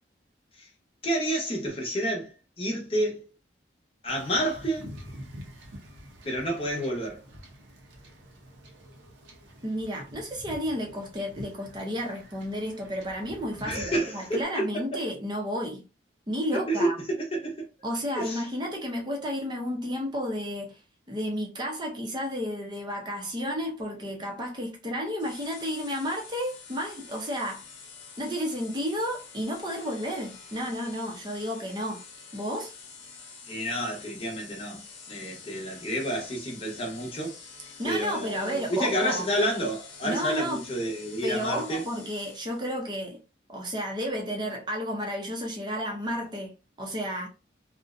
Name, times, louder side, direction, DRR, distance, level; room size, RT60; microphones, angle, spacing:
voice 1, 1.0-3.3 4.0-4.9 6.2-7.2 13.6-14.8 16.5-17.7 18.1-18.4 33.5-37.4 37.8-41.8, right 1 dB, 30° left, 0.8 m, -29 dB
Wind / Ocean / Boat Water vehicle, 4.1-14.4, equal, 75° right, 0.6 m, -47 dB
voice 2, 9.6-15.9 16.3-17.0 17.8-20.8 21.1-27.7 28.2-32.0 32.3-32.7 37.8-39.2 40.0-40.7 41.2-43.2 43.5-47.3, equal, 25° right, 0.6 m, -32 dB
sound 1, 25.2-42.8, left 5 dB, 85° left, 0.7 m, -47 dB
2.6 x 2.1 x 2.4 m
head